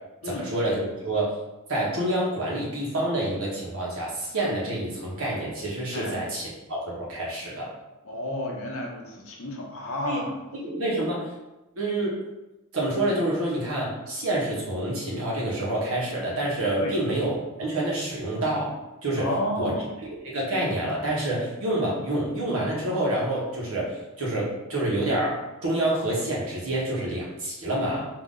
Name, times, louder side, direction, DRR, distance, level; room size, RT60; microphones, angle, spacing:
voice 1, 0.2-1.3 1.7-7.7 10.0-10.2 10.6-11.2 11.7-12.2 12.7-18.8 19.0-19.3 19.5-19.7 20.0-28.0, right 1 dB, 65° right, -4 dB, 1.3 m, -27 dB
voice 2, 8.0-10.3 16.8-16.9 19.2-19.9, left 1 dB, 65° left, -1 dB, 0.9 m, -31 dB
3.9 x 2.8 x 3.8 m, 1.0 s
head